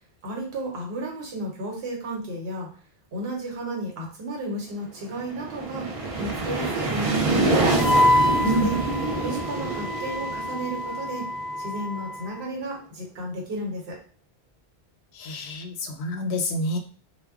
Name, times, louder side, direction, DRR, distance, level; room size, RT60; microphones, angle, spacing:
voice 1, 0.2-2.7 3.1-5.9 6.2-7.6 8.4-8.8 9.2-11.3 11.6-14.0, right 1 dB, 75° right, 0 dB, 1.1 m, -33 dB
sound 1, 5.1-11.8, right 3 dB, 50° right, 0.4 m, -26 dB
Wind instrument woodwind instrument, 7.8-12.4, left 1 dB, 50° left, 0.6 m, -26 dB
voice 2, 15.2-16.8, equal, 90° left, 4 dB, 0.8 m, -27 dB
2.1 x 2.1 x 3.4 m, 0.42 s
omnidirectional pair, 1.1 m